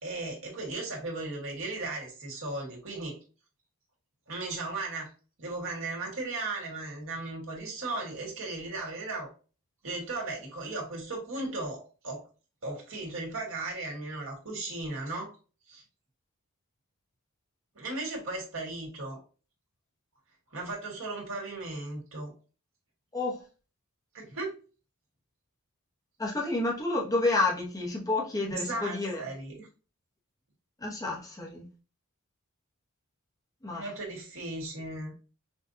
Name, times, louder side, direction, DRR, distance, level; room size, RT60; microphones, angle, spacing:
voice 1, 0.0-3.2 4.3-5.1 5.4-9.3 9.8-12.2 12.6-15.4 15.7-15.8 17.8-19.2 20.5-22.3 24.1-24.5 28.4-29.7 33.7-35.1, right 2 dB, 65° right, 2.0 m, -36 dB
voice 2, 26.2-29.2 30.8-31.6 33.6-33.8, left 2 dB, 15° left, 1.0 m, -29 dB
6.1 x 2.5 x 2.7 m
head